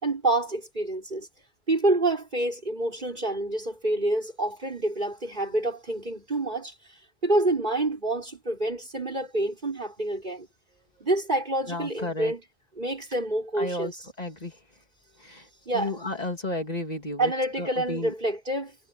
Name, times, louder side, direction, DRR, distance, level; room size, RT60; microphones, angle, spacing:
voice 1, 0.0-1.3 1.7-6.7 7.2-10.5 11.0-12.4 12.8-14.0 15.7-15.9 17.2-18.8, right 2 dB, 45° right, 5.9 m, -27 dB
voice 2, 11.7-12.3 13.6-13.9 14.2-14.5 15.2-15.4 15.7-17.3 17.6-18.1, left 1 dB, 40° left, 2.8 m, -32 dB
omnidirectional pair, 1.1 m